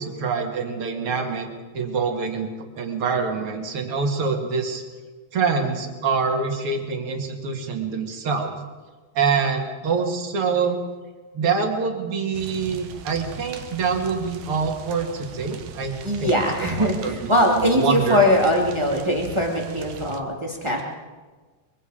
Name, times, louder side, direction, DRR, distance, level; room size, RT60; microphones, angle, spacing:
voice 1, 0.0-1.5 1.7-2.5 2.8-4.8 5.3-8.5 9.1-10.8 11.3-16.3 16.6-18.2, right 5 dB, 45° right, 3 dB, 2.0 m, -25 dB
sound 1, 12.3-20.2, right 8 dB, 80° right, 1.8 m, -40 dB
voice 2, 16.0-20.8, left 1 dB, 15° right, -1 dB, 1.0 m, -21 dB
24.5 x 23.0 x 5.1 m, 1.4 s
omnidirectional pair, 5.4 m